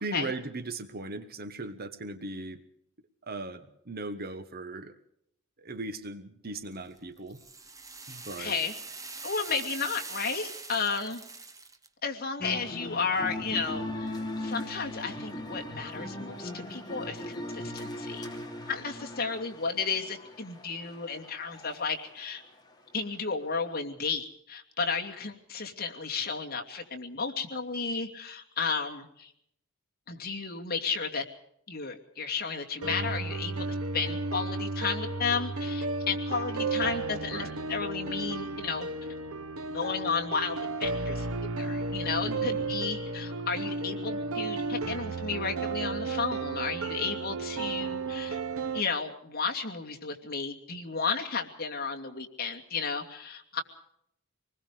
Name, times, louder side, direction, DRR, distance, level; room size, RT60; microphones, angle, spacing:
voice 1, 0.0-2.6 3.3-4.9 5.6-7.4 8.1-8.6 37.3-37.5 42.3-42.7, right 2 dB, 45° right, 10 dB, 1.3 m, -38 dB
sound 1, 6.7-11.9, right 4 dB, 15° right, 1.3 m, -43 dB
voice 2, 8.4-8.7 9.2-11.2 12.0-18.3 18.7-22.4 22.9-29.3 30.1-31.2 31.7-33.6 33.9-38.9 39.7-41.3 41.6-48.4 48.7-53.6, left 5 dB, 45° left, 2 dB, 2.7 m, -33 dB
sound 2, 12.4-21.9, left 1 dB, 20° left, 3.0 m, -39 dB
sound 3, 32.8-48.8, right 3 dB, 80° right, 1.0 m, -33 dB
26.0 x 20.5 x 5.1 m, 0.74 s
head